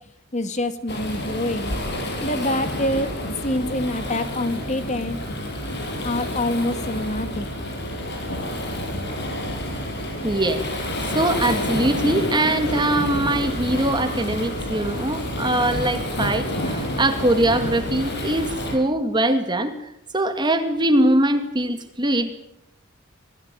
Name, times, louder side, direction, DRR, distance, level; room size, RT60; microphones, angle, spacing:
voice 1, 0.3-1.7 2.2-3.2 3.4-5.2 6.0-7.5, left 1 dB, 35° left, 2.2 m, -26 dB
Waves surf, 0.9-18.8, left 1 dB, 55° left, 7.3 m, -29 dB
voice 2, 10.2-10.6 11.1-22.3, right 1 dB, 20° right, 2.3 m, -22 dB
27.0 x 20.0 x 9.1 m
head